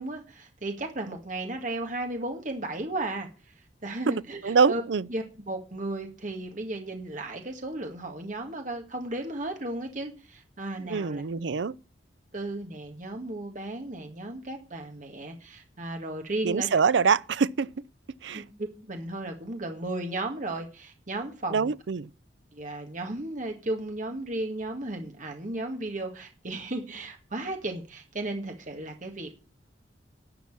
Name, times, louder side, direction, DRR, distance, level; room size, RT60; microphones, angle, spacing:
voice 1, 0.0-3.3 3.8-4.8 5.1-11.2 12.3-16.7 18.3-21.7 22.5-29.3, right 2 dB, 45° right, 1.9 m, -35 dB
voice 2, 4.4-5.1 10.8-11.8 16.4-17.7 18.2-18.4 21.5-22.1, right 5 dB, 75° right, 0.5 m, -24 dB
11.5 x 6.0 x 8.7 m
head